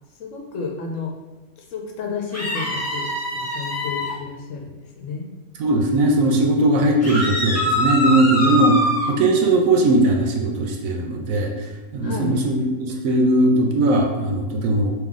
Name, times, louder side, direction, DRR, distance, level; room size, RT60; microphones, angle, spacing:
voice 1, 0.2-1.1 1.6-3.1 3.3-5.3 12.0-12.4, left 4 dB, 65° left, 1 dB, 0.9 m, -31 dB
sound 1, 2.3-4.1 7.0-9.1, left 1 dB, 15° left, 0.7 m, -23 dB
voice 2, 5.6-8.8 9.1-14.9, right 1 dB, 75° right, 2 dB, 1.0 m, -19 dB
3.4 x 3.1 x 3.6 m, 1.1 s
omnidirectional pair, 1.5 m